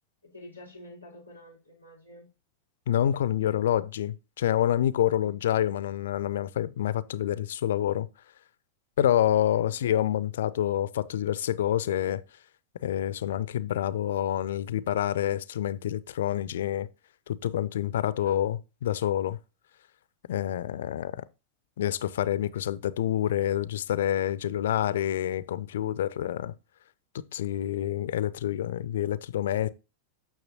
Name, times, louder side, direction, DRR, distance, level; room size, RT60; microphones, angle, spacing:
voice 1, 0.2-2.3 5.2-5.4 9.5-9.8 18.1-18.5, left 1 dB, 90° right, 4.1 m, -49 dB
voice 2, 2.9-8.1 9.0-12.2 12.8-16.9 17.3-19.4 20.3-21.2 21.8-26.5 27.1-29.7, left 11 dB, 60° left, 0.4 m, -27 dB
9.5 x 6.0 x 2.8 m
figure-of-eight pair, 90°, 0 cm